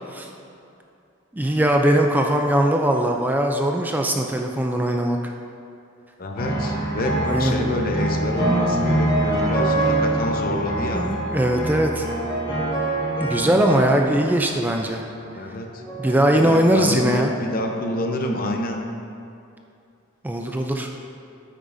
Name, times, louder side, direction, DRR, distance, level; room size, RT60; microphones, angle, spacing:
voice 1, 1.3-5.3 7.2-7.6 10.9-12.1 13.2-15.0 16.0-17.3 20.2-20.9, right 1 dB, 10° right, 2 dB, 0.3 m, -20 dB
voice 2, 6.2-11.1 15.3-15.8 16.4-18.8, left 1 dB, 45° left, 2 dB, 0.7 m, -27 dB
sound 1, 6.4-15.0 15.7-16.2, right 1 dB, 25° left, 1.9 m, -25 dB
8.9 x 8.5 x 2.6 m, 2.6 s
head